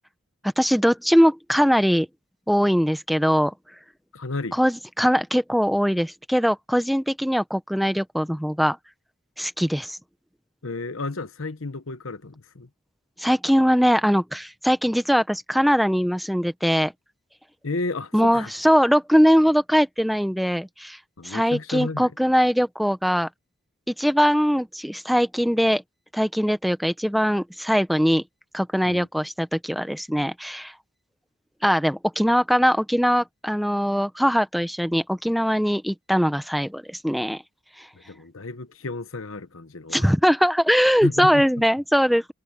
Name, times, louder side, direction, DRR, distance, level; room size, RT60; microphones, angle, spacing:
voice 1, 0.6-2.1 2.5-3.5 4.5-8.8 9.4-10.0 13.2-16.9 18.1-21.0 21.2-23.3 23.9-25.8 26.1-28.2 28.5-30.7 31.6-37.4 37.8-37.9 39.9-42.3, equal, ahead, 0.8 m, -21 dB
voice 2, 4.1-4.6 10.6-12.7 17.6-18.5 21.2-22.1 28.8-29.1 38.1-40.1 41.0-41.4, left 3 dB, 85° left, 1.2 m, -32 dB
head